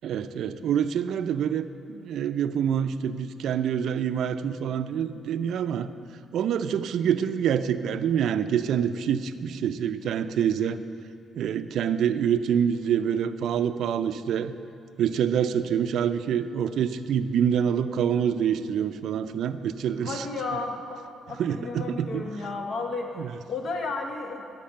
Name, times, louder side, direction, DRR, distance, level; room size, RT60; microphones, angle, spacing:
voice 1, 0.0-5.9 6.3-10.8 11.4-14.5 15.0-20.3 21.4-22.2 23.2-23.3, right 8 dB, 75° right, 11 dB, 0.4 m, -26 dB
voice 2, 20.0-24.4, left 3 dB, 60° left, 3 dB, 1.3 m, -33 dB
11.5 x 6.0 x 6.7 m, 2.6 s
cardioid pair, 90°, 0 cm